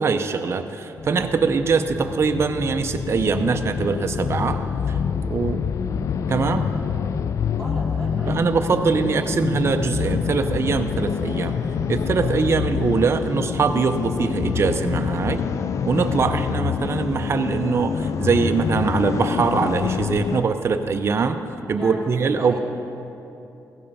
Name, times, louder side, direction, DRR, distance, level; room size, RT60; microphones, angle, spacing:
voice 1, 0.0-4.6 4.9-5.0 5.3-5.6 6.3-6.7 8.3-11.5 11.9-15.4 15.8-21.4 21.7-22.6, right 5 dB, 40° right, 7 dB, 0.6 m, -22 dB
sound 1, 1.0-20.4, left 6 dB, 50° left, 0.3 m, -26 dB
voice 2, 7.6-8.4 21.7-22.1 22.4-22.6, right 1 dB, 5° left, -8 dB, 2.7 m, -36 dB
15.5 x 5.5 x 5.4 m, 2.8 s
cardioid pair, 95°, 6 cm